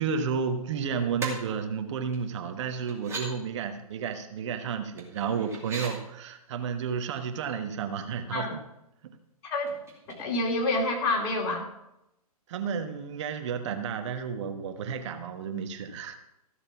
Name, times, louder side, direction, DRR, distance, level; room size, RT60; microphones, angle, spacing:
voice 1, 0.0-8.6 9.0-9.2 12.5-16.2, right 6 dB, 50° right, 7 dB, 1.3 m, -32 dB
sound 1, 1.2-1.3 2.1-2.2 2.9-3.3 5.0-5.9 7.7-7.8 8.1-8.6 9.7-10.6 11.0-11.1, right 3 dB, 15° right, 2.6 m, -38 dB
voice 2, 10.1-11.6, left 2 dB, 40° left, 1 dB, 2.8 m, -28 dB
14.5 x 6.7 x 6.0 m, 0.86 s
hypercardioid pair, 125°, 19 cm